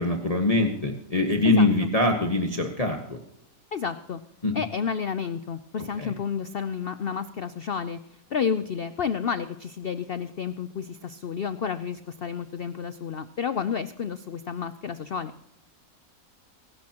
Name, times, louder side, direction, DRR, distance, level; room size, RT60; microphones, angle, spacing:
voice 1, 0.0-3.2 4.4-4.6 6.0-6.1, left 2 dB, 25° left, 3 dB, 1.3 m, -23 dB
voice 2, 1.4-1.9 3.7-4.2 4.5-8.0 8.3-15.3, left 7 dB, 75° left, 12 dB, 0.5 m, -30 dB
24.5 x 12.5 x 2.9 m, 0.78 s
omnidirectional pair, 1.8 m